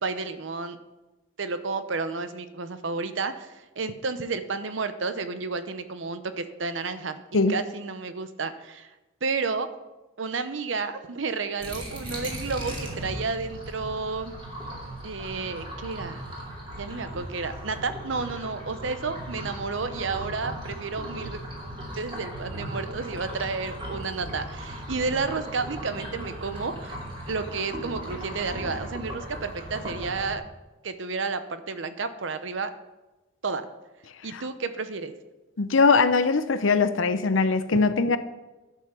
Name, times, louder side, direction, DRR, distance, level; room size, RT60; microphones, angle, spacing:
voice 1, 0.0-0.8 1.4-7.2 7.5-8.9 9.2-9.7 10.2-14.3 15.0-16.2 16.8-21.4 21.9-27.0 27.3-30.5 30.8-32.7 33.4-33.7 34.2-35.1, right 4 dB, 70° right, 10 dB, 0.8 m, -31 dB
sound 1, 11.6-30.4, right 1 dB, 25° right, 2.5 m, -37 dB
voice 2, 35.6-38.2, left 4 dB, 80° left, 11 dB, 0.7 m, -21 dB
11.5 x 5.6 x 6.8 m, 1.1 s
head